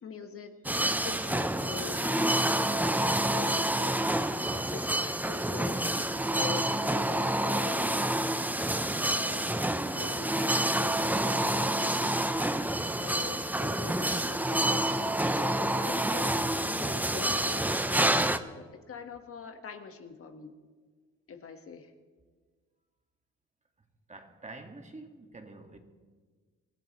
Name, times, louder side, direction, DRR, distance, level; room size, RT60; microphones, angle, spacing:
voice 1, 0.0-4.0 4.5-8.3 8.9-12.6 13.0-20.5 21.3-21.9, left 6 dB, 50° left, 1.6 m, -44 dB
sound 1, 0.6-18.4, right 1 dB, 5° right, 0.7 m, -28 dB
voice 2, 24.1-25.8, right 2 dB, 25° right, 1.8 m, -47 dB
25.0 x 16.0 x 3.2 m
cardioid pair, 90°, 30 cm